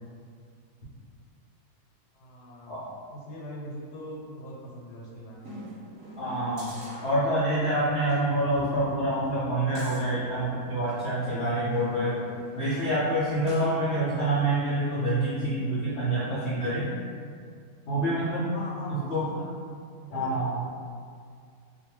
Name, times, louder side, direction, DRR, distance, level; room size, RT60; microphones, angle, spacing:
voice 1, 2.1-2.7 3.1-5.6 18.5-19.5 20.0-20.4, equal, 85° left, -3 dB, 1.2 m, -42 dB
sound 1, 5.4-7.6 8.0-8.2 8.5-11.0 11.7-13.9 14.3-14.4, equal, 15° right, 1.0 m, -45 dB
voice 2, 6.2-6.7 7.0-12.3 12.6-16.9 17.9-18.5 18.9-19.3 20.1-20.7, right 1 dB, 65° left, -10 dB, 0.6 m, -27 dB
2.5 x 2.2 x 3.0 m, 2.2 s
omnidirectional pair, 1.7 m